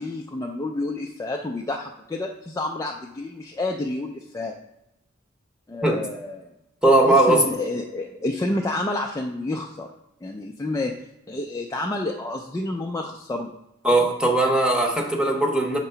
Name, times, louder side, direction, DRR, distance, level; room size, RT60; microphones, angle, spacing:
voice 1, 0.0-4.5 5.7-6.5 7.1-9.9 10.2-10.9 11.3-13.5, left 2 dB, 15° left, 0 dB, 0.4 m, -29 dB
voice 2, 6.8-7.5 13.8-15.8, right 2 dB, 5° right, -1 dB, 0.8 m, -19 dB
6.5 x 3.0 x 5.6 m, 0.89 s
head